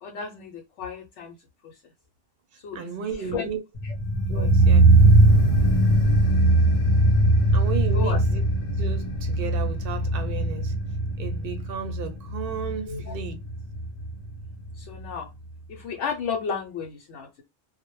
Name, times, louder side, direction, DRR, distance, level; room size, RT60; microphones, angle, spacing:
voice 1, 0.0-1.4 1.6-1.8 2.6-3.5 3.8-3.9 4.3-4.5 7.9-8.2 12.9-13.1 14.7-15.3 15.7-17.4, left 6 dB, 90° left, 0.9 m, -33 dB
voice 2, 2.7-3.6 4.3-4.8 7.5-8.4 8.8-10.7 11.2-13.4, right 6 dB, 60° right, 0.7 m, -34 dB
sound 1, 3.8-14.8 15.0-15.1, right 2 dB, 55° left, 0.4 m, -20 dB
2.1 x 2.1 x 2.9 m
omnidirectional pair, 1.2 m